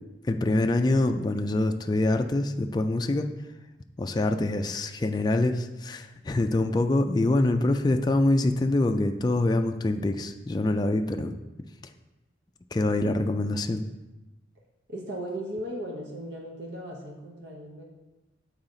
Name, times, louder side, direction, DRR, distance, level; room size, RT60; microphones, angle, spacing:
voice 1, 0.3-3.3 4.0-11.3 12.7-13.8, left 2 dB, 20° left, 6 dB, 0.3 m, -25 dB
voice 2, 14.9-17.8, right 1 dB, 70° right, -1 dB, 0.9 m, -37 dB
7.2 x 4.8 x 3.8 m, 1.1 s
head